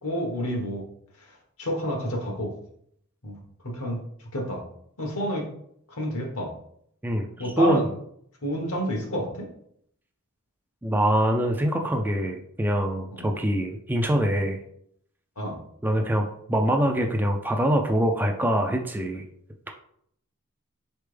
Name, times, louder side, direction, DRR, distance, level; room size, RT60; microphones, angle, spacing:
voice 1, 0.0-0.8 1.6-2.5 3.2-3.4 3.7-4.0 4.3-4.6 5.0-5.5 5.9-6.5 7.4-7.9 8.4-9.5 13.1-13.3 15.4-15.6, equal, 70° left, 1 dB, 1.2 m, -29 dB
voice 2, 7.0-7.9 10.8-14.6 15.8-19.2, equal, 10° right, 3 dB, 0.3 m, -24 dB
4.3 x 3.3 x 3.3 m, 0.69 s
head